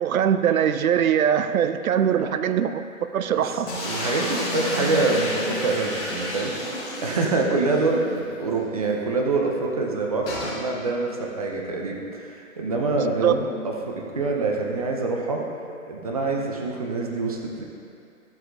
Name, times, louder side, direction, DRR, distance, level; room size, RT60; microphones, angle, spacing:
voice 1, 0.0-2.8 3.1-3.7 13.0-13.4, right 9 dB, 75° right, 11 dB, 0.6 m, -22 dB
voice 2, 2.2-2.6 3.3-15.4 15.9-17.6, right 3 dB, 25° right, 0 dB, 0.6 m, -26 dB
sound 1, 3.7-7.8 8.2-8.3 8.5-8.6 10.3-10.6, left 1 dB, 10° left, 0.9 m, -30 dB
13.0 x 7.9 x 2.5 m, 2.5 s
hypercardioid pair, 160°, 42 cm